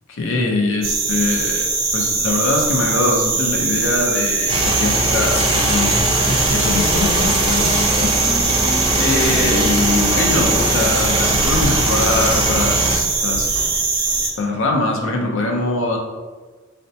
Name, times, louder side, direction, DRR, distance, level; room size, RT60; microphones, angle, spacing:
voice 1, 0.1-1.7 1.9-8.1 9.0-13.6 14.4-16.0, left 2 dB, 65° left, 1 dB, 0.6 m, -22 dB
sound 1, 0.8-14.3, right 4 dB, 70° right, 0.6 m, -21 dB
sound 2, 4.5-13.0, right 1 dB, 25° right, 0.6 m, -21 dB
sound 3, 5.6-10.6, equal, 25° left, 0.8 m, -30 dB
4.1 x 2.1 x 2.7 m, 1.4 s
head